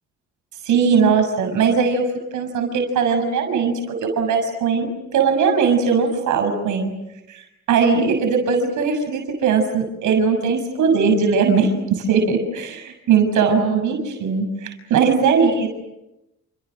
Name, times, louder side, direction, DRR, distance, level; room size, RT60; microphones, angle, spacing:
voice 1, 0.6-2.1 2.3-4.9 5.1-6.9 7.3-7.4 7.7-15.7, right 5 dB, 80° right, 5 dB, 6.8 m, -19 dB
30.0 x 29.5 x 6.4 m, 0.93 s
cardioid pair, 90°, 30 cm